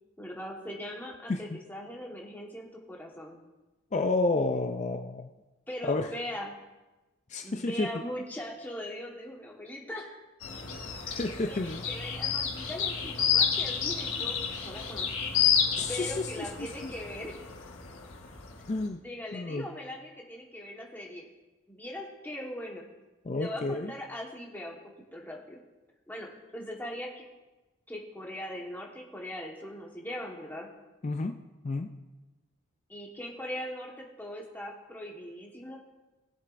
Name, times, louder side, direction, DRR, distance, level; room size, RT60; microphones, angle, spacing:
voice 1, 0.2-3.4 5.7-6.5 7.4-10.2 11.5-14.4 14.6-15.1 15.9-17.4 19.0-21.2 21.7-22.8 23.3-24.8 25.1-25.6 26.1-27.2 27.9-30.7 32.9-35.8, left 1 dB, 10° left, -1 dB, 1.3 m, -40 dB
voice 2, 3.9-5.3 5.8-6.1 7.3-7.9 11.0-11.8 15.8-16.1 16.8-16.9 18.7-19.0 19.3-19.7 23.3-23.9 31.0-31.4 31.6-31.9, left 3 dB, 35° left, 6 dB, 0.4 m, -30 dB
sound 1, 10.4-18.8, left 7 dB, 80° left, 1.5 m, -30 dB
19.5 x 7.8 x 2.6 m, 1.1 s
head